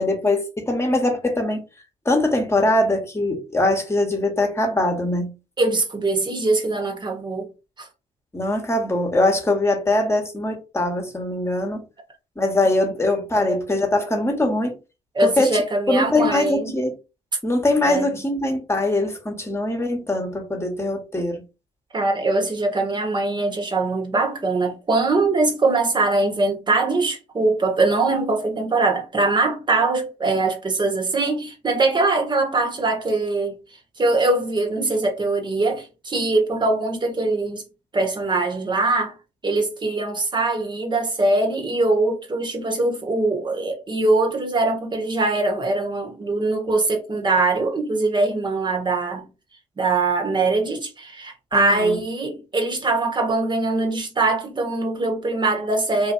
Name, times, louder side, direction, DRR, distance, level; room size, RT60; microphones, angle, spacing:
voice 1, 0.0-1.6 2.0-5.3 8.3-11.8 12.4-14.8 15.2-15.5 15.9-16.9 17.4-21.4 51.5-52.0, left 2 dB, 20° left, 1.2 m, -22 dB
voice 2, 5.6-7.5 7.8-7.9 13.3-13.6 15.1-16.8 17.8-18.1 21.9-33.6 34.0-37.6 37.9-39.1 39.4-49.3 49.8-56.1, right 2 dB, 30° right, 1.2 m, -22 dB
2.8 x 2.6 x 2.6 m
supercardioid pair, 55°, 15 cm